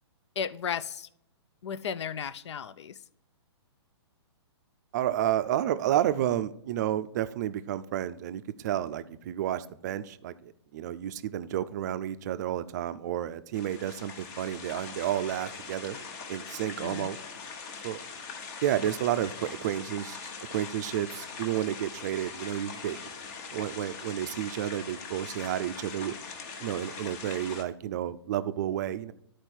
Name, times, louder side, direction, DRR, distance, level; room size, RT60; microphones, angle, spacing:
voice 1, 0.4-1.1 1.6-3.0 16.8-17.1, left 7 dB, 80° left, 15 dB, 0.4 m, -34 dB
voice 2, 4.9-16.0 16.3-17.2 17.8-18.0 18.6-20.2 20.5-23.0 23.5-26.2 26.6-29.1, right 11 dB, 40° right, 13 dB, 0.4 m, -31 dB
sound 1, 13.5-27.6, left 5 dB, 40° left, 1.0 m, -42 dB
11.0 x 4.5 x 4.5 m, 0.72 s
hypercardioid pair, 150°, 14 cm